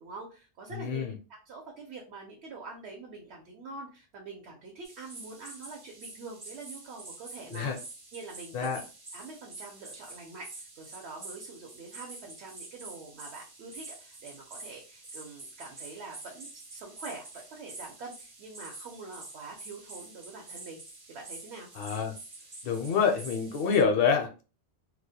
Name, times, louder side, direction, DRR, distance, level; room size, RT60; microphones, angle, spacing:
voice 1, 0.0-7.7 8.1-8.7 9.1-20.8 21.1-21.7, right 3 dB, 70° right, 1 dB, 0.8 m, -45 dB
voice 2, 0.7-1.1 7.5-7.8 8.5-8.8 21.8-22.1 22.6-24.4, left 6 dB, 65° left, 4 dB, 0.7 m, -27 dB
sound 1, 4.8-23.8, right 3 dB, 35° right, 0.3 m, -47 dB
2.3 x 2.0 x 2.6 m, 0.34 s
omnidirectional pair, 1.2 m